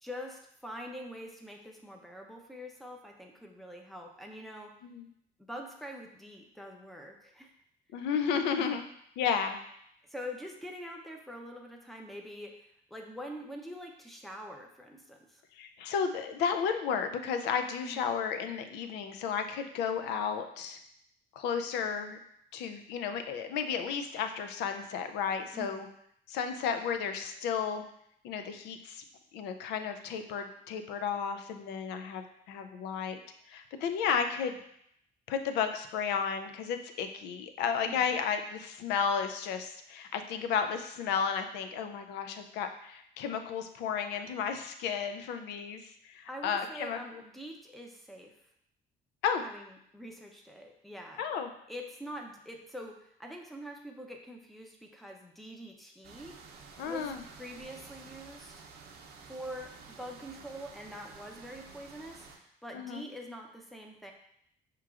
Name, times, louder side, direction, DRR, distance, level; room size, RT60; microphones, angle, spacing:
voice 1, 0.0-4.7 5.4-7.6 8.5-8.8 10.0-15.4 17.8-18.0 25.5-25.9 37.8-38.1 46.3-48.4 49.4-51.2 51.7-56.4 56.8-58.6 59.3-64.1, equal, ahead, 1 dB, 0.6 m, -45 dB
voice 2, 7.9-8.8 9.2-9.6 15.5-20.8 21.3-22.2 22.5-25.9 26.3-27.8 28.2-29.0 29.3-33.2 33.5-34.6 35.3-47.2 49.2-49.4 51.2-51.5 56.8-57.2 62.7-63.1, left 6 dB, 85° left, 7 dB, 0.5 m, -33 dB
sound 1, 56.0-62.4, right 5 dB, 70° right, 0.6 m, -51 dB
5.8 x 3.0 x 2.4 m, 0.71 s
cardioid pair, 110°, 17 cm